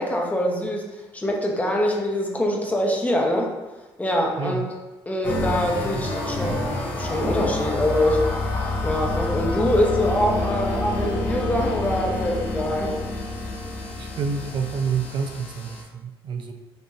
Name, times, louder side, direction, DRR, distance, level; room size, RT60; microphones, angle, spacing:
voice 1, 0.0-3.5 4.0-4.6 5.1-6.6 6.9-8.2 8.8-13.0, left 1 dB, 15° left, 0 dB, 0.8 m, -24 dB
voice 2, 4.4-4.7 14.0-16.5, right 6 dB, 55° right, 5 dB, 0.4 m, -28 dB
sound 1, 5.2-15.8, left 2 dB, 90° left, 1.3 m, -28 dB
sound 2, 6.3-13.9, left 1 dB, 60° left, 1.1 m, -44 dB
5.3 x 2.8 x 2.4 m, 1.1 s
cardioid pair, 90°, 10 cm